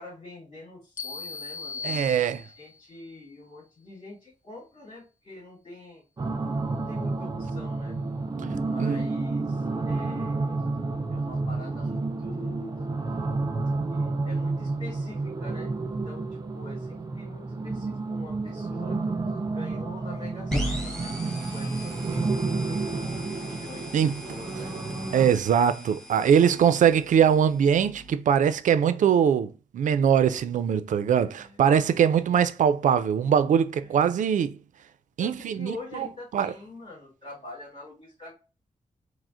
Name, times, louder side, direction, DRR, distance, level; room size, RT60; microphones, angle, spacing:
voice 1, 0.0-6.0 6.7-8.0 8.6-10.6 11.1-12.9 13.9-19.0 19.5-21.2 21.5-24.8 31.2-31.6 33.8-34.0 35.2-38.3, left 2 dB, 50° left, 1.9 m, -45 dB
sound 1, 1.0-2.9, left 4 dB, 90° left, 0.6 m, -37 dB
voice 2, 1.8-2.4 8.8-9.0 23.9-24.2 25.1-34.6 35.2-36.1 36.3-36.5, right 8 dB, 85° right, 0.4 m, -22 dB
sound 2, 6.2-25.3, right 3 dB, 30° right, 0.5 m, -30 dB
sound 3, 20.5-28.1, equal, 5° left, 1.3 m, -37 dB
4.9 x 2.1 x 3.7 m
wide cardioid pair, 130°, 13 cm